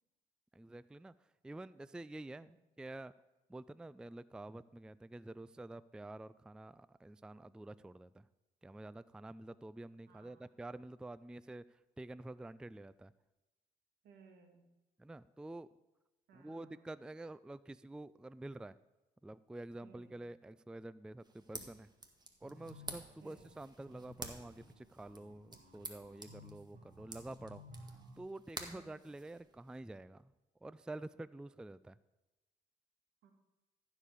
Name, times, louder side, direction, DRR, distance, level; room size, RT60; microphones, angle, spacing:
voice 1, 0.5-1.1 1.4-3.1 3.5-8.2 8.6-13.1 15.0-15.7 16.3-18.8 19.2-21.9 22.4-27.6 28.2-30.3 30.6-32.0, right 2 dB, 5° right, 17 dB, 0.3 m, -49 dB
voice 2, 10.1-10.5 14.0-14.6 16.3-17.0 19.8-20.2 23.2-23.5 26.7-27.0 28.7-29.1 33.2-33.3, right 5 dB, 80° right, 4 dB, 1.9 m, -62 dB
sound 1, 21.2-29.8, right 2 dB, 25° right, 1.9 m, -51 dB
sound 2, 22.4-28.2, left 1 dB, 45° right, 3.2 m, -56 dB
14.5 x 5.0 x 6.9 m, 1.1 s
supercardioid pair, 65°, 17 cm